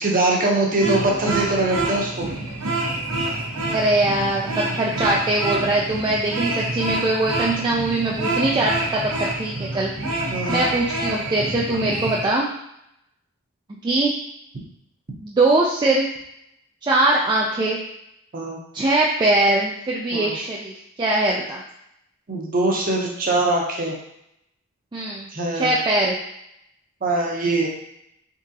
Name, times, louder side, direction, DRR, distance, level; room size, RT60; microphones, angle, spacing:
voice 1, 0.0-2.3 10.3-10.7 18.3-18.6 20.1-20.3 22.3-24.0 25.3-25.8 27.0-27.7, right 2 dB, 40° right, -1 dB, 0.8 m, -22 dB
sound 1, 0.8-12.3, right 2 dB, 70° right, 0.9 m, -27 dB
voice 2, 3.7-9.9 10.5-12.5 13.8-14.1 15.2-16.1 16.8-17.8 18.7-20.7 21.0-21.6 24.9-25.3 25.5-26.1, right 2 dB, 20° right, -4 dB, 0.3 m, -21 dB
3.7 x 3.6 x 2.7 m, 0.79 s
head